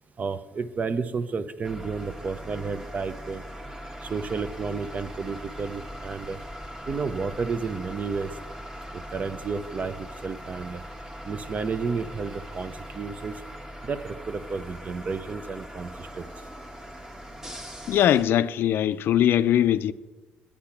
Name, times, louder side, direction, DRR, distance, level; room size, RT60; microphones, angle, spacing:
voice 1, 0.2-3.4 4.0-6.4 6.9-8.3 8.9-10.8 11.2-13.4 13.8-16.3, right 5 dB, 40° right, 0.7 m, -31 dB
sound 1, 1.6-18.3, equal, 15° right, 1.3 m, -40 dB
voice 2, 17.9-19.9, left 11 dB, 70° left, 0.4 m, -21 dB
8.6 x 8.5 x 5.9 m
cardioid pair, 80°, 4 cm